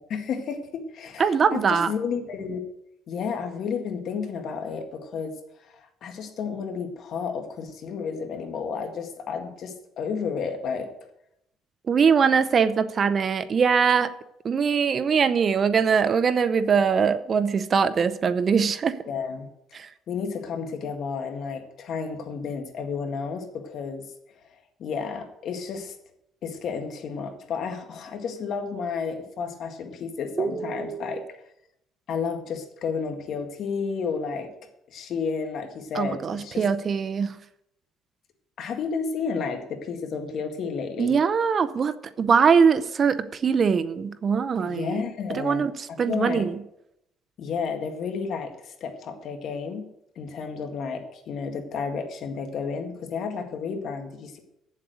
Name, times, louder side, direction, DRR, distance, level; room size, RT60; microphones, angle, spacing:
voice 1, 0.0-2.6 3.1-5.3 5.7-10.9 19.1-19.5 20.1-24.0 24.4-26.0 26.4-31.2 32.1-34.5 34.9-36.7 38.6-41.1 44.6-46.5 47.4-49.8 50.2-54.4, left 5 dB, 55° left, 6 dB, 1.9 m, -32 dB
voice 2, 1.2-1.9 11.9-14.1 14.4-19.0 19.7-19.9 30.4-31.2 35.9-37.4 41.0-45.0 45.3-45.7 46.0-46.5, right 6 dB, 40° right, 13 dB, 0.6 m, -22 dB
8.4 x 7.5 x 8.1 m, 0.80 s
cardioid pair, 115°, 0 cm